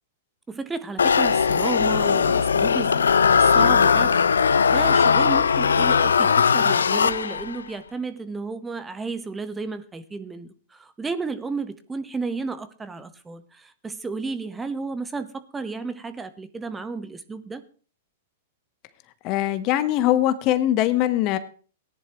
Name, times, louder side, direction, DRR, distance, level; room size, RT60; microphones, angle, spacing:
voice 1, 0.5-4.2 4.7-17.6, right 4 dB, 15° right, 10 dB, 1.1 m, -32 dB
sound 1, 1.0-7.6, left 6 dB, 80° left, 0.5 m, -19 dB
voice 2, 19.2-21.4, left 13 dB, 45° left, 12 dB, 1.1 m, -21 dB
18.0 x 10.5 x 3.0 m, 0.40 s
hypercardioid pair, 110°, 0 cm